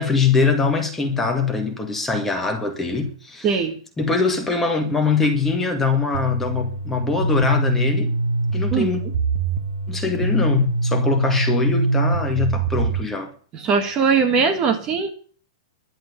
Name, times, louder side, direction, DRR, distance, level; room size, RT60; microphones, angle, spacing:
voice 1, 0.0-3.6 4.0-8.1 8.5-9.0 9.9-13.3, left 4 dB, 10° left, 1.9 m, -22 dB
voice 2, 3.4-3.8 8.7-8.9 13.5-15.1, right 5 dB, 20° right, 1.7 m, -20 dB
sound 1, 6.1-13.0, right 2 dB, 90° right, 1.6 m, -23 dB
11.5 x 7.8 x 9.6 m
hypercardioid pair, 165°, 3 cm